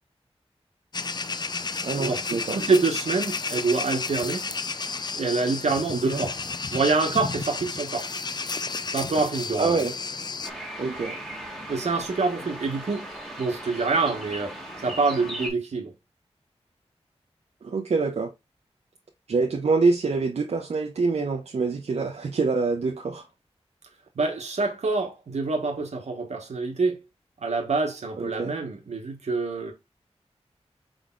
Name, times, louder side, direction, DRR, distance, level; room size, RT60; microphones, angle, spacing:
sound 1, 0.9-10.5, left 4 dB, 40° left, 0.4 m, -32 dB
voice 1, 1.8-2.6 5.9-6.2 9.6-9.9 10.8-11.2 17.6-18.3 19.3-23.3 28.2-28.5, right 4 dB, 70° right, 0.6 m, -25 dB
voice 2, 2.5-4.4 5.1-6.3 6.7-8.1 8.9-9.7 11.7-13.1 13.4-14.5 14.8-15.9 24.2-27.0 27.4-29.7, right 3 dB, 85° right, 1.1 m, -26 dB
sound 2, 10.4-15.5, right 1 dB, 5° left, 1.6 m, -38 dB
4.9 x 3.9 x 2.3 m
wide cardioid pair, 100°, 11 cm